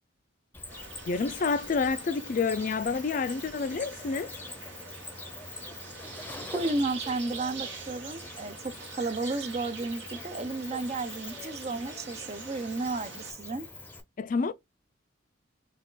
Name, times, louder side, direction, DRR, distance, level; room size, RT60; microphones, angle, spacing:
Cricket, 0.5-14.0, left 3 dB, 10° left, 0.7 m, -44 dB
sound 1, 0.7-13.3, right 4 dB, 75° right, 1.6 m, -44 dB
voice 1, 1.1-4.3 14.2-14.5, left 4 dB, 45° left, 0.4 m, -28 dB
voice 2, 6.5-13.7, right 2 dB, 35° right, 0.5 m, -33 dB
4.1 x 2.4 x 3.8 m
head